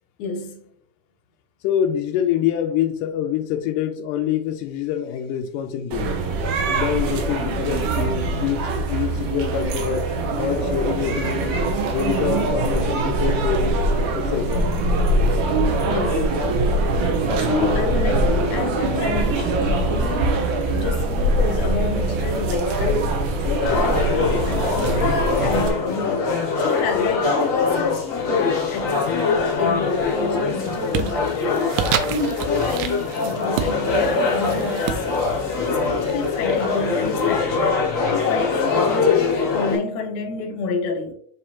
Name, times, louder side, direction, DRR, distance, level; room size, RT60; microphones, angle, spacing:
voice 1, 0.2-0.6 15.8-16.3 17.2-23.2 23.4-35.2 35.6-37.8 38.1-41.1, left 4 dB, 70° left, 2.3 m, -29 dB
voice 2, 1.6-6.1 6.7-10.1 10.4-11.6 11.9-13.8 14.1-14.7 23.6-23.8, left 9 dB, 90° left, 2.2 m, -25 dB
sound 1, 5.9-25.7, right 2 dB, 70° right, 2.2 m, -22 dB
sound 2, 23.6-39.8, left 4 dB, 45° left, 2.1 m, -23 dB
sound 3, 29.6-30.1 30.5-37.1, right 9 dB, 90° right, 2.3 m, -30 dB
6.9 x 4.9 x 2.8 m
omnidirectional pair, 3.7 m